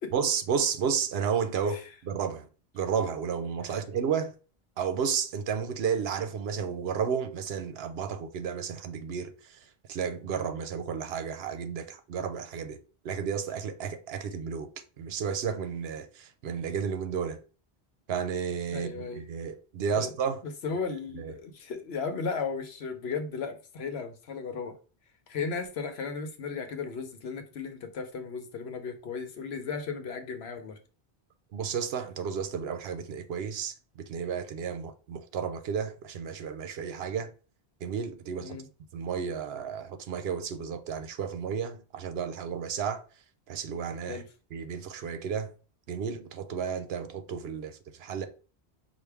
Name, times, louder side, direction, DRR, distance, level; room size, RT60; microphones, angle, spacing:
voice 1, 0.1-2.5 2.7-4.3 4.8-9.6 9.9-14.7 15.0-17.4 18.1-20.4 21.2-21.3 31.5-33.7 34.1-37.3 37.8-38.6 38.9-43.0 43.5-44.2 44.5-45.5 45.9-48.3, right 7 dB, 75° right, 0.8 m, -32 dB
voice 2, 18.7-19.2 19.9-20.1 20.4-24.8 25.3-30.8 38.4-38.7 44.1-44.3, left 5 dB, 80° left, 1.0 m, -35 dB
5.8 x 2.5 x 3.3 m
omnidirectional pair, 1.1 m